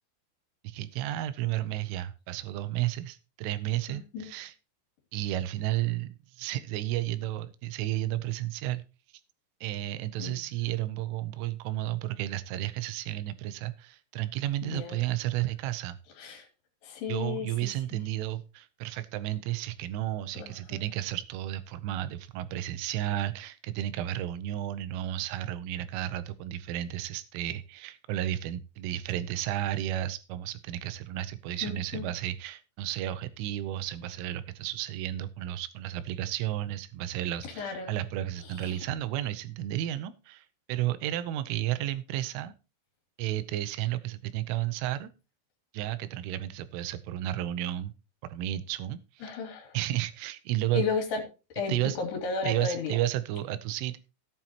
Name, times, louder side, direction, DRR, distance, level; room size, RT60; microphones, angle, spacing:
voice 1, 0.6-4.5 5.1-8.8 9.6-16.0 17.1-42.5 43.2-45.1 45.7-47.9 48.2-49.3 49.7-50.8 51.7-52.0 52.4-54.0, right 13 dB, 85° right, 13 dB, 3.3 m, -32 dB
voice 2, 3.9-4.2 10.2-10.4 14.6-15.0 16.2-16.5 16.8-18.0 20.3-20.8 31.6-32.0 37.4-37.9 38.5-38.8 49.2-49.8 50.7-51.2 51.5-53.0, left 5 dB, 60° left, 3 dB, 4.7 m, -34 dB
15.0 x 9.2 x 2.9 m, 0.30 s
omnidirectional pair, 5.6 m